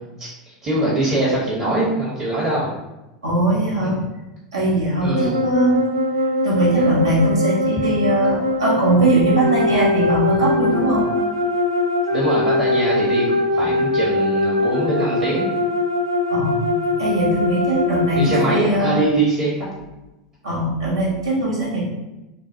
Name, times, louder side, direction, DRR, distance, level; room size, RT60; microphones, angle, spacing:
voice 1, 0.2-2.7 3.8-3.9 5.0-5.4 6.7-6.9 7.8-7.9 12.1-15.5 18.1-19.5, right 2 dB, 35° right, -7 dB, 1.1 m, -22 dB
voice 2, 3.2-4.0 4.5-5.8 6.4-11.1 16.3-16.6 17.0-19.0 20.4-21.8, right 1 dB, 70° right, -5 dB, 1.1 m, -20 dB
sound 1, 5.1-18.6, left 2 dB, 85° right, 0.4 m, -21 dB
3.9 x 2.1 x 2.8 m, 0.98 s
figure-of-eight pair, 80°, 3 cm